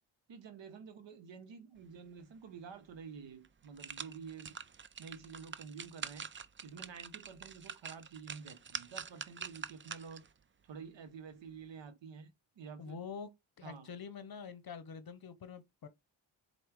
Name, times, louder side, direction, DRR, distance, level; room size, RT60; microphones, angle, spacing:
voice 1, 0.3-4.6 5.0-6.3 6.6-10.3 10.6-13.0 13.6-13.9, right 6 dB, 65° right, 0.8 m, -50 dB
sound 1, 2.9-3.0 3.4-10.3 10.7-10.8, right 6 dB, 25° right, 0.4 m, -46 dB
voice 2, 12.8-13.3 13.6-15.9, left 6 dB, 50° left, 0.7 m, -46 dB
4.5 x 2.2 x 4.6 m
cardioid pair, 45°, 48 cm